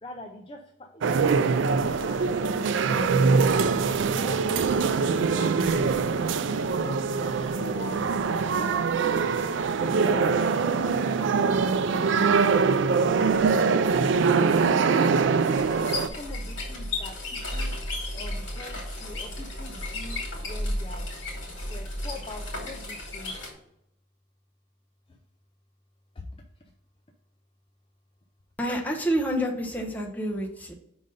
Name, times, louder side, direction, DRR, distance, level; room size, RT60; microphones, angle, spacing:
voice 1, 0.0-2.5 2.8-3.7 4.0-4.8 5.1-8.1 8.4-9.4 9.7-13.0 13.5-15.6 16.0-17.8 18.1-23.3 25.1-25.2 26.1-26.3, left 1 dB, 30° left, 3 dB, 0.4 m, -43 dB
sound 1, 1.0-16.1, right 5 dB, 75° right, 0.4 m, -23 dB
sound 2, 15.5-23.5, left 1 dB, 80° left, 2.3 m, -33 dB
voice 2, 28.6-30.7, equal, 10° left, 0 dB, 0.8 m, -28 dB
5.3 x 3.9 x 5.3 m, 0.79 s
head